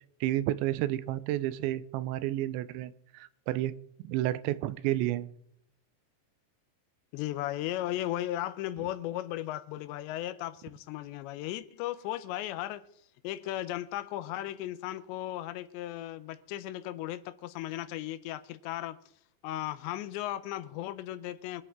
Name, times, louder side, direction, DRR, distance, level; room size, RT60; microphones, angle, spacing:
voice 1, 0.2-3.7 4.0-5.3, right 14 dB, 85° right, 3.0 m, -31 dB
voice 2, 7.1-12.8 13.2-19.0 19.4-21.6, left 14 dB, 85° left, 3.0 m, -36 dB
25.5 x 8.6 x 3.7 m
omnidirectional pair, 5.1 m